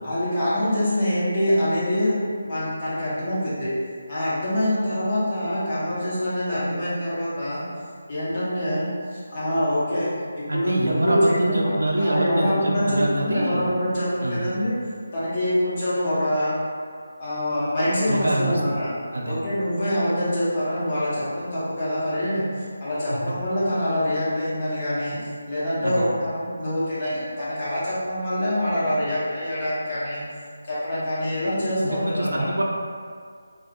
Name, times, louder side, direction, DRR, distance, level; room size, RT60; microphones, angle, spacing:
voice 1, 0.0-2.2 2.4-3.7 4.1-7.6 8.1-10.1 10.4-11.7 12.0-14.7 15.1-16.5 17.2-18.9 19.2-22.5 22.8-30.2 30.6-32.5, left 1 dB, 35° left, -11 dB, 0.7 m, -25 dB
voice 2, 10.5-13.7 14.2-14.5 18.1-18.8 19.1-19.4 23.3-23.4 25.8-26.1 31.8-32.6, right 1 dB, 90° right, -2 dB, 0.3 m, -25 dB
2.3 x 2.0 x 2.7 m, 2.1 s
figure-of-eight pair, 165°, 0 cm